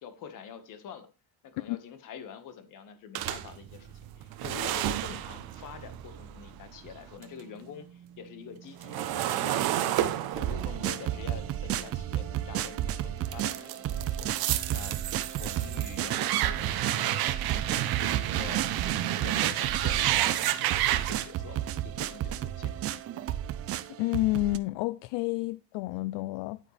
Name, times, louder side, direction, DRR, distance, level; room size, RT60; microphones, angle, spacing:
voice 1, 0.0-1.1 1.4-10.0 10.3-18.9 19.2-23.0, left 7 dB, 45° left, 1.6 m, -46 dB
sound 1, 3.1-7.4 7.8-12.7 13.2-21.2, right 13 dB, 55° right, 1.0 m, -31 dB
sound 2, 10.3-24.6, right 12 dB, 35° right, 0.5 m, -33 dB
voice 2, 24.0-26.6, left 20 dB, 70° left, 0.5 m, -29 dB
9.7 x 9.1 x 3.3 m
cardioid pair, 165°, 45 cm